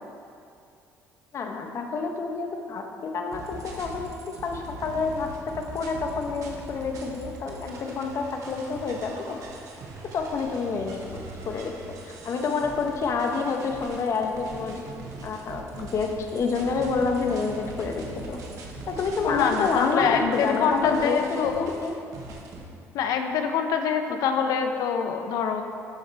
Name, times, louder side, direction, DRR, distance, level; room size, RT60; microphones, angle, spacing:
voice 1, 1.3-9.4 10.1-11.0 11.4-11.7 12.1-14.8 15.2-18.4 18.9-21.9 24.1-24.2, left 4 dB, 50° left, 3 dB, 1.1 m, -28 dB
sound 1, 3.3-22.6, right 3 dB, 65° right, 1.6 m, -41 dB
voice 2, 19.2-21.7 22.9-25.6, left 7 dB, 75° left, 6 dB, 0.8 m, -25 dB
13.0 x 7.2 x 3.5 m, 2.5 s
cardioid pair, 90°, 6 cm